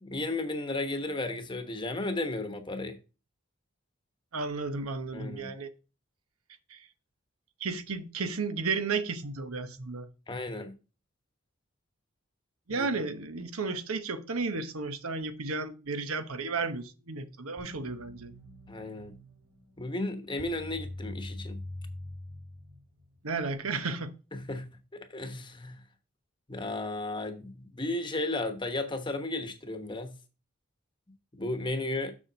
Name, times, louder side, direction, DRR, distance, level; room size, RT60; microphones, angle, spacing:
voice 1, 0.0-3.0 5.1-5.5 10.3-10.8 12.7-12.9 18.7-19.2 19.8-21.6 24.3-25.8 26.5-30.2 31.3-32.2, left 2 dB, 20° left, 1.0 m, -34 dB
voice 2, 4.3-5.7 6.7-6.9 7.6-10.1 12.7-18.3 23.2-24.1, right 4 dB, 85° right, 1.1 m, -33 dB
sound 1, 17.6-23.2, left 1 dB, 65° right, 4.3 m, -43 dB
7.4 x 6.4 x 3.9 m
head